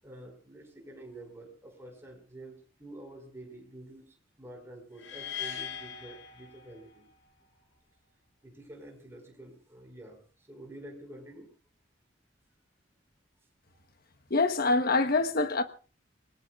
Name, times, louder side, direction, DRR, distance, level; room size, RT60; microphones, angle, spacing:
voice 1, 0.0-4.0 4.4-7.1 8.4-11.5, right 1 dB, 15° right, 5.1 m, -48 dB
sound 1, 5.0-7.1, left 8 dB, 85° left, 4.1 m, -40 dB
voice 2, 14.3-15.6, left 3 dB, 55° left, 1.2 m, -25 dB
27.5 x 19.0 x 2.5 m
head